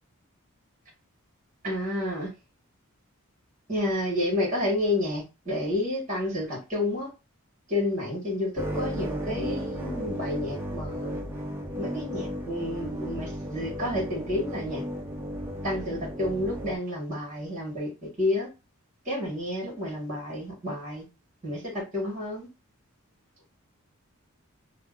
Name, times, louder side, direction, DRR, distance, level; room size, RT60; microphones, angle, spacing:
voice 1, 1.6-2.3 3.7-7.1 7.7-11.2 11.8-14.8 15.6-17.9 18.2-18.5 19.0-21.0 21.4-22.5, left 1 dB, 35° right, 1.3 m, -30 dB
sound 1, 8.6-16.8, equal, 10° right, 0.4 m, -34 dB
2.7 x 2.1 x 3.6 m
head